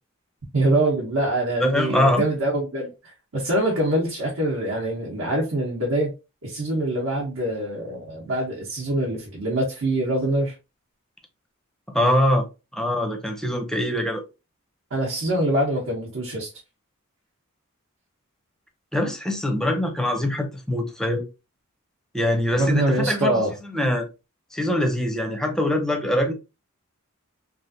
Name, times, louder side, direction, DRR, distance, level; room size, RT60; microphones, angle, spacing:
voice 1, 0.5-6.1 6.4-10.6 14.9-16.5 22.5-23.5, right 1 dB, 75° right, 1.0 m, -24 dB
voice 2, 1.6-2.2 11.9-12.4 12.7-14.2 18.9-21.2 22.1-23.4 23.7-24.1 24.5-26.3, left 1 dB, 5° left, 0.5 m, -23 dB
3.2 x 2.5 x 2.6 m
head